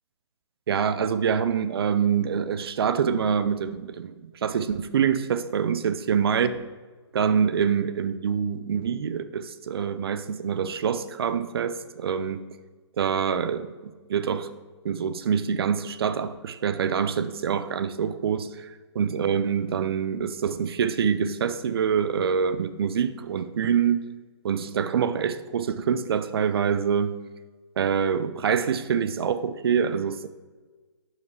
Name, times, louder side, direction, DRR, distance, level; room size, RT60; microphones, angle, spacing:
voice 1, 0.7-6.6 7.1-12.4 13.0-14.5 14.8-24.0 24.4-27.2 27.8-30.3, right 7 dB, 55° right, 12 dB, 0.5 m, -25 dB
11.0 x 4.9 x 3.2 m, 1.3 s
figure-of-eight pair, 135°, 15 cm